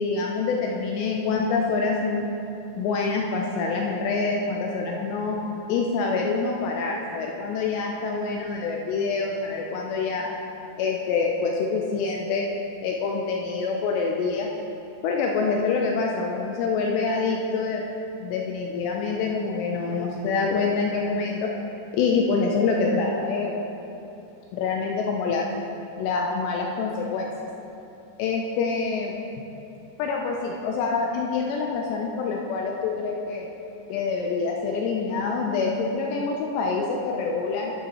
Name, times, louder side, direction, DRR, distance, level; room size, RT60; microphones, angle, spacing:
voice 1, 0.0-2.2 2.8-5.4 5.7-10.4 10.8-12.5 12.8-14.5 15.0-17.8 18.2-21.5 21.9-23.6 24.6-25.5 26.0-27.3 28.2-29.2 30.0-33.5 33.9-37.7, left 4 dB, 80° left, 0 dB, 2.5 m, -26 dB
11.5 x 9.2 x 3.0 m, 2.9 s
omnidirectional pair, 5.4 m